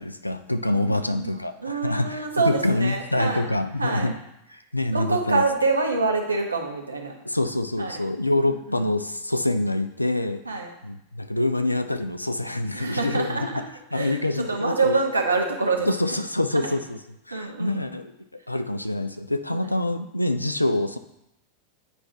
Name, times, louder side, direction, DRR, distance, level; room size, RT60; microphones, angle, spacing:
voice 1, 0.0-4.1 4.5-5.4 7.3-10.4 10.8-13.6 13.9-15.0 15.9-17.0 17.3-18.1 18.5-21.0, left 1 dB, 85° left, 9 dB, 0.4 m, -26 dB
voice 2, 0.7-3.5 3.8-4.1 4.9-7.1 7.8-8.0 8.5-8.8 10.4-10.7 12.7-13.7 13.9-15.9 16.5-16.7 17.3-17.8 19.5-19.7, right 3 dB, 80° right, 1 dB, 1.0 m, -26 dB
8.9 x 4.6 x 2.7 m, 0.84 s
figure-of-eight pair, 90°, 0 cm